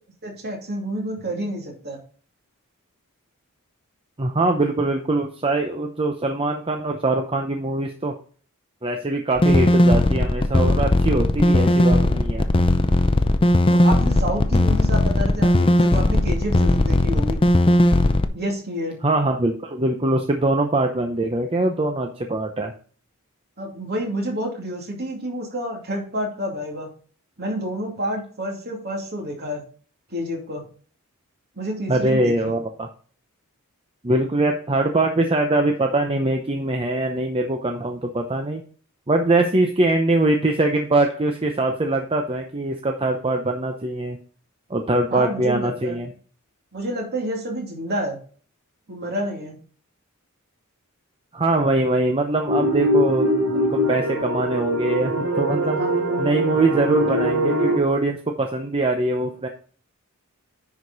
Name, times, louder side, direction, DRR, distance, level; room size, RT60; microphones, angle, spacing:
voice 1, 0.2-2.0 13.7-17.4 18.3-19.0 23.6-26.9 27.4-29.6 30.1-30.6 31.6-32.5 45.1-46.0 46.7-48.2 48.9-49.6 55.7-56.1, equal, 45° right, 0 dB, 2.7 m, -29 dB
voice 2, 4.2-8.1 8.8-12.4 19.0-22.7 31.9-32.9 34.0-38.6 39.1-44.2 44.7-46.1 51.3-53.3 53.5-55.8 56.2-59.5, right 2 dB, 25° right, 4 dB, 0.7 m, -22 dB
sound 1, 9.4-18.3, left 1 dB, 25° left, 0.6 m, -17 dB
sound 2, 52.5-57.8, equal, 65° right, 2.8 m, -22 dB
10.0 x 4.9 x 4.0 m, 0.43 s
head